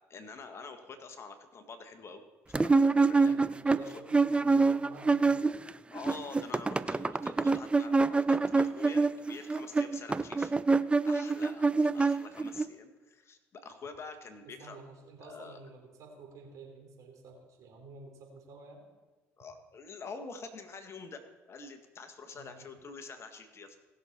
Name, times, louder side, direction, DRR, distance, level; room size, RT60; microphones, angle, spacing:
voice 1, 0.1-2.2 2.5-4.0 5.9-10.5 11.0-14.8 15.2-15.6 19.4-23.8, left 4 dB, 40° left, 7 dB, 1.6 m, -47 dB
sound 1, 2.5-5.7 6.0-12.6, right 3 dB, 15° right, 0.5 m, -26 dB
voice 2, 3.2-5.5 14.6-18.8 22.3-22.7, right 3 dB, 55° right, 1 dB, 3.9 m, -50 dB
19.0 x 6.7 x 4.4 m, 1.2 s
hypercardioid pair, 55°, 7 cm